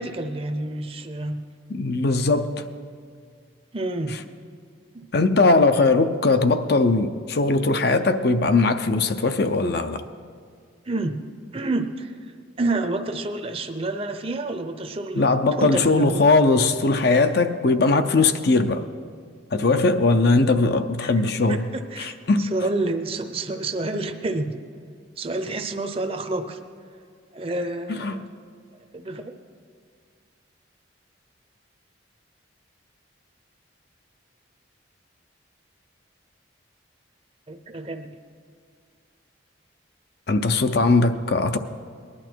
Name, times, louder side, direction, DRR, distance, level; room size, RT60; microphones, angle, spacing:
voice 1, 0.0-1.4 3.7-4.2 4.9-5.1 10.9-11.2 11.5-12.1 12.6-15.2 15.6-16.2 21.0-21.1 21.5-24.6 25.2-26.6 27.3-28.3 28.9-29.3 37.5-38.2, right 2 dB, 30° right, 0.7 m, -28 dB
voice 2, 1.7-2.6 5.1-10.0 15.1-18.9 19.5-21.7 22.0-22.5 27.9-28.2 40.3-41.6, left 3 dB, 50° left, 0.6 m, -20 dB
19.5 x 11.5 x 4.5 m
head